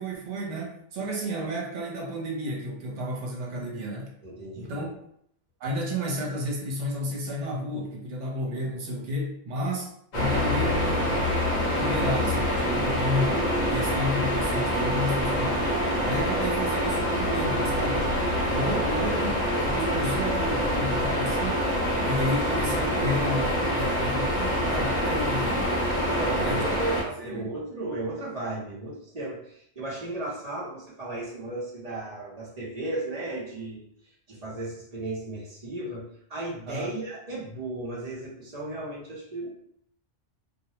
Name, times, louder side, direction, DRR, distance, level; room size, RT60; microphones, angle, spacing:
voice 1, 0.0-4.1 4.6-4.9 5.6-11.3 11.7-15.6 16.0-18.1 18.4-21.6 21.9-25.8 26.4-26.6 27.0-27.5 36.7-36.9, equal, 70° right, -2 dB, 1.0 m, -32 dB
voice 2, 4.2-4.7 26.1-33.9 34.3-36.0 36.3-39.5, right 2 dB, 35° right, -6 dB, 0.8 m, -35 dB
sound 1, 10.1-27.0, equal, 45° left, 0.6 m, -26 dB
2.3 x 2.1 x 2.8 m, 0.68 s
omnidirectional pair, 1.3 m